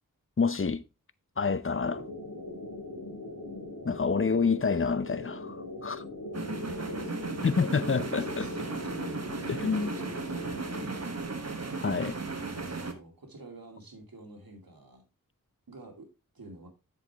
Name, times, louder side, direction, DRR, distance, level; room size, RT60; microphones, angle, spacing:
voice 1, 0.4-0.8 1.4-2.0 3.8-5.6 5.8-6.0 7.4-8.5 9.5-9.9 11.8-12.1, left 5 dB, 40° left, 0.7 m, -27 dB
sound 1, 1.8-10.9, left 2 dB, 70° left, 2.7 m, -40 dB
sound 2, 6.3-12.9, right 3 dB, 45° right, 1.3 m, -36 dB
voice 2, 6.3-7.4 7.8-9.9 10.2-11.7 12.5-15.0 15.7-16.7, right 2 dB, 85° right, 2.5 m, -49 dB
7.7 x 7.0 x 3.4 m
wide cardioid pair, 50°, 34 cm